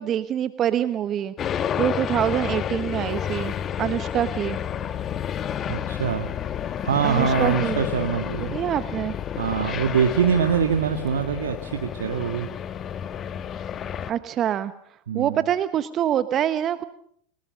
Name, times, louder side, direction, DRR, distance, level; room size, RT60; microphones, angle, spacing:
voice 1, 0.0-1.5 1.8-3.5 3.8-4.6 7.0-7.8 8.4-9.1 14.1-14.7 15.1-16.8, right 10 dB, 35° right, 13 dB, 1.0 m, -25 dB
sound 1, 1.4-14.1, left 9 dB, 35° left, 1.3 m, -30 dB
voice 2, 5.7-6.3 6.7-8.6 9.4-12.5 15.1-15.4, right 7 dB, 75° right, 6 dB, 1.8 m, -24 dB
30.0 x 19.5 x 6.5 m, 0.65 s
hypercardioid pair, 90°, 0 cm